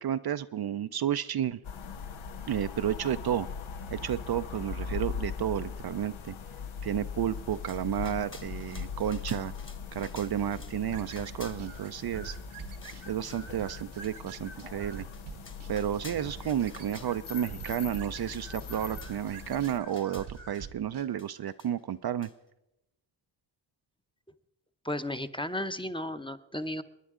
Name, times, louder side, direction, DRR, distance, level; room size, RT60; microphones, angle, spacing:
voice 1, 0.0-1.6 2.5-3.5 3.9-6.3 6.8-9.5 9.9-12.4 13.1-15.1 15.7-22.3, right 10 dB, 55° right, 11 dB, 0.5 m, -32 dB
sound 1, 1.6-19.8, left 6 dB, 85° left, 0.9 m, -40 dB
sound 2, 7.3-10.8 11.0-12.4 12.8-13.5 14.0-14.1 14.6-14.7 15.0-17.4 17.7-17.8 18.1-20.7 21.2-21.9 22.2-22.3, left 3 dB, 25° left, 1.4 m, -52 dB
sound 3, 10.9-21.1, right 6 dB, 80° right, 1.3 m, -46 dB
voice 2, 24.8-26.8, left 1 dB, 10° left, 9 dB, 0.7 m, -34 dB
27.5 x 10.0 x 3.7 m, 0.90 s
cardioid pair, 55°, 47 cm